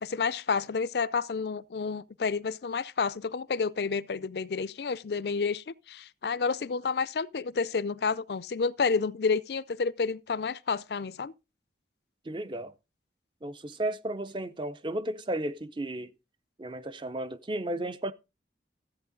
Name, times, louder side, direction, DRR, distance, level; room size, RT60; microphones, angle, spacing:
voice 1, 0.0-11.3, left 5 dB, 65° left, 0.5 m, -30 dB
voice 2, 12.2-12.7 13.4-16.2 16.6-18.1, right 1 dB, 25° right, 0.6 m, -34 dB
13.5 x 8.2 x 3.8 m
head